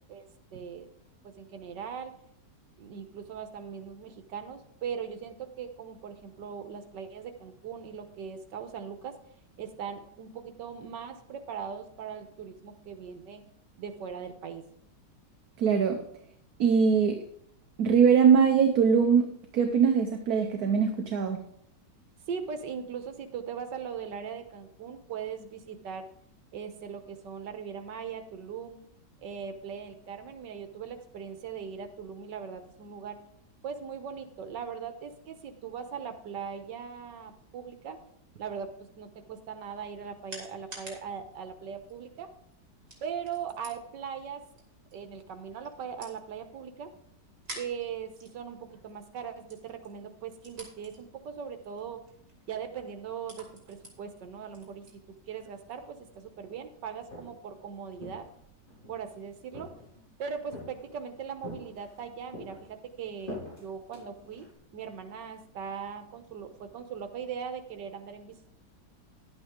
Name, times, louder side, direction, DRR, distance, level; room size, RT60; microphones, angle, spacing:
voice 1, 0.5-0.9 1.2-2.1 2.8-9.2 9.6-13.4 13.8-14.6 22.3-26.1 26.5-28.8 29.2-33.2 33.6-38.0 38.4-42.3 43.0-44.4 44.9-46.9 47.5-48.6 48.8-52.0 52.5-58.3 58.9-59.7 60.2-64.5 64.7-68.3, right 7 dB, 85° right, 8 dB, 1.7 m, -40 dB
voice 2, 15.6-16.0 16.6-17.2 17.8-21.4, right 6 dB, 65° right, 5 dB, 1.3 m, -22 dB
sound 1, 39.5-55.9, right 1 dB, 45° right, 3.1 m, -52 dB
Walk footsteps, 57.0-57.5 58.0-59.0 59.5-60.1 60.5-61.0 61.4-62.0 62.3-64.5, left 1 dB, 30° left, 5.1 m, -44 dB
11.0 x 8.6 x 3.7 m, 0.70 s
omnidirectional pair, 1.9 m